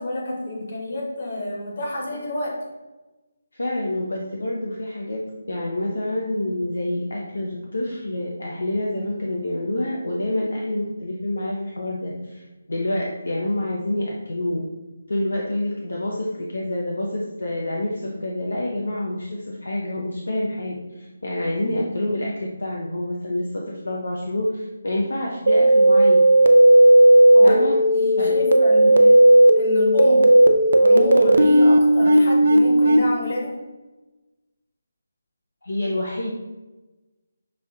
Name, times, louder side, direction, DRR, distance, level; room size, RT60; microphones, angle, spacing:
voice 1, 0.0-2.6 11.8-11.9 27.3-29.1 29.5-30.3 30.8-33.6, left 1 dB, 45° left, -2 dB, 1.1 m, -29 dB
voice 2, 3.5-5.2 5.5-14.6 15.1-22.3 22.6-26.2 27.4-27.8 28.2-29.0 35.6-36.3, left 1 dB, 65° left, -2 dB, 0.5 m, -27 dB
sound 1, 25.5-33.0, right 1 dB, 55° right, 0.3 m, -14 dB
5.8 x 2.6 x 2.4 m, 1.1 s
figure-of-eight pair, 150°, 0 cm